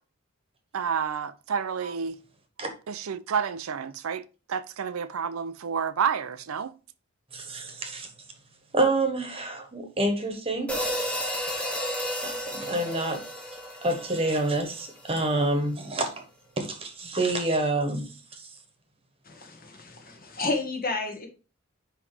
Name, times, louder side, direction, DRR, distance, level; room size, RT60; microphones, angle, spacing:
voice 1, 0.7-2.2 2.9-6.7, right 7 dB, 85° right, 0.5 m, -30 dB
voice 2, 7.3-8.1 8.7-10.7 12.2-13.2 13.8-16.1 16.6-18.1 18.4-18.5, right 2 dB, 30° right, 1.3 m, -27 dB
sound 1, 10.7-15.1, equal, 5° left, 1.2 m, -32 dB
voice 3, 19.2-21.3, left 3 dB, 45° left, 1.7 m, -31 dB
9.8 x 3.3 x 3.4 m
head